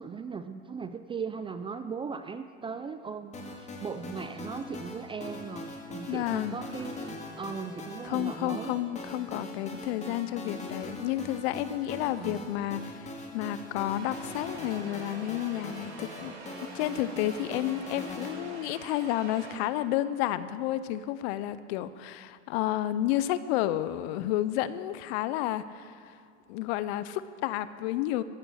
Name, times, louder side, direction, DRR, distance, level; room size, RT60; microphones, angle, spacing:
voice 1, 0.0-8.7 12.2-12.4, right 5 dB, 15° right, 10 dB, 0.3 m, -38 dB
sound 1, 3.3-18.3, left 2 dB, 20° left, 2.2 m, -41 dB
voice 2, 6.1-6.6 8.0-16.3 16.7-26.2 26.5-28.2, left 13 dB, 60° left, 15 dB, 0.7 m, -31 dB
sound 2, 13.9-19.6, right 4 dB, 75° right, 2.8 m, -46 dB
14.0 x 8.7 x 6.5 m, 2.3 s
hypercardioid pair, 100°, 36 cm